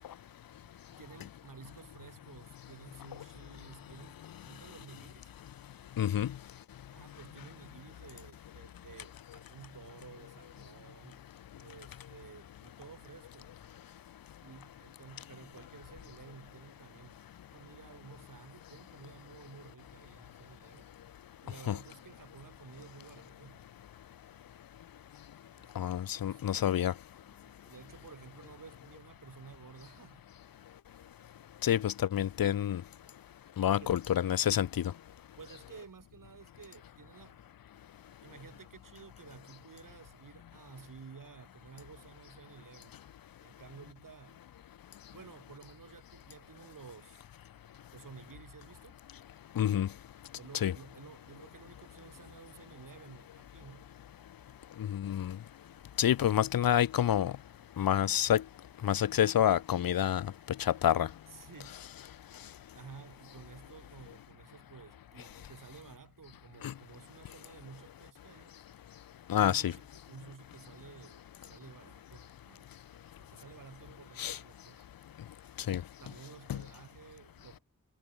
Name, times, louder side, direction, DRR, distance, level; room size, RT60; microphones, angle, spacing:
voice 1, 0.6-5.3 6.9-11.2 11.6-13.5 14.4-17.2 17.5-20.9 21.4-23.7 25.6-26.4 27.3-30.3 33.6-34.0 35.4-37.4 38.2-43.0 43.4-44.4 45.1-47.2 47.9-49.0 50.4-53.9 56.2-56.3 61.3-61.8 62.7-68.6 69.3-72.8 73.2-74.9 76.0-77.6, right 6 dB, 70° right, 7.1 m, -53 dB
voice 2, 6.0-6.3 21.7-21.8 25.8-26.9 31.6-32.8 33.6-34.7 49.6-49.9 50.6-50.7 54.9-55.4 56.0-57.3 57.8-58.4 58.8-60.3 60.6-61.1 66.6-66.7 69.3-69.7 74.2-74.4 75.7-75.8 76.5-76.6, left 10 dB, 90° left, 0.7 m, -28 dB
wide cardioid pair, 100°, 34 cm